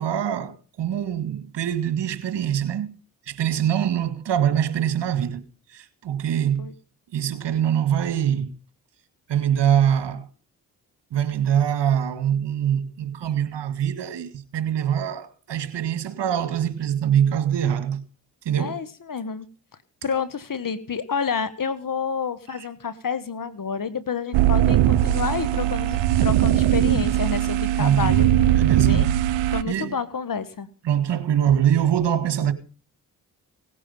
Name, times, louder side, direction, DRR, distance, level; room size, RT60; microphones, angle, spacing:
voice 1, 0.0-2.9 3.3-5.4 5.7-6.7 7.1-8.5 9.3-10.3 11.1-18.0 18.5-18.8 27.8-28.2 28.5-29.1 29.6-30.0 30.8-32.5, right 9 dB, 65° right, 2.1 m, -23 dB
voice 2, 18.6-19.5 20.0-28.3 28.7-29.1 29.5-30.7, left 6 dB, 45° left, 1.6 m, -29 dB
sound 1, 24.3-29.6, right 13 dB, 85° right, 0.7 m, -20 dB
18.0 x 9.7 x 5.5 m
supercardioid pair, 40°, 45 cm